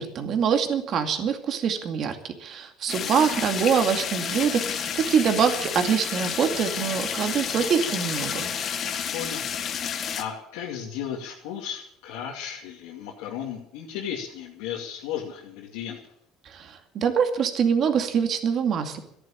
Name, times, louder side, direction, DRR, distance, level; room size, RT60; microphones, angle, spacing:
voice 1, 0.0-8.5 16.5-19.0, right 7 dB, 45° right, 6 dB, 2.4 m, -24 dB
sound 1, 2.9-10.2, left 7 dB, 40° left, 1.6 m, -30 dB
voice 2, 3.0-3.5 9.1-16.1, left 9 dB, 90° left, -3 dB, 2.5 m, -35 dB
14.5 x 11.0 x 8.8 m, 0.75 s
cardioid pair, 125°, 0 cm